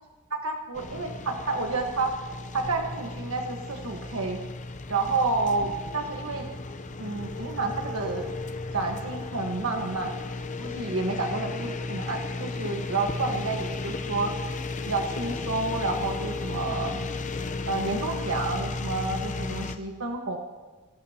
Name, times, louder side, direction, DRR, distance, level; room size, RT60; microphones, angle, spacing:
voice 1, 0.3-2.1 2.5-4.4 4.9-6.5 7.0-8.3 8.7-10.1 10.6-14.3 14.9-17.0 17.7-20.4, right 3 dB, 75° right, 2 dB, 1.5 m, -30 dB
sound 1, 0.7-19.8, left 3 dB, 35° left, 0.8 m, -34 dB
25.0 x 19.0 x 2.9 m, 1.3 s
head